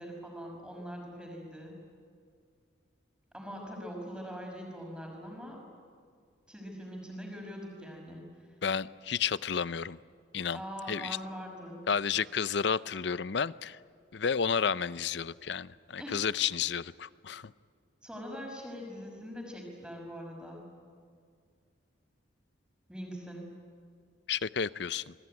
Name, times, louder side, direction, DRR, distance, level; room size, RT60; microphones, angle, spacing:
voice 1, 0.0-1.7 3.3-5.6 6.5-8.2 10.5-11.8 16.0-16.3 18.0-20.6 22.9-23.5, equal, 5° right, 1 dB, 5.6 m, -42 dB
voice 2, 8.6-10.0 10.3-10.6 10.9-11.2 11.9-13.8 14.1-17.5 24.3-25.1, left 6 dB, 65° left, 18 dB, 0.6 m, -31 dB
27.5 x 21.0 x 9.6 m, 2.2 s
head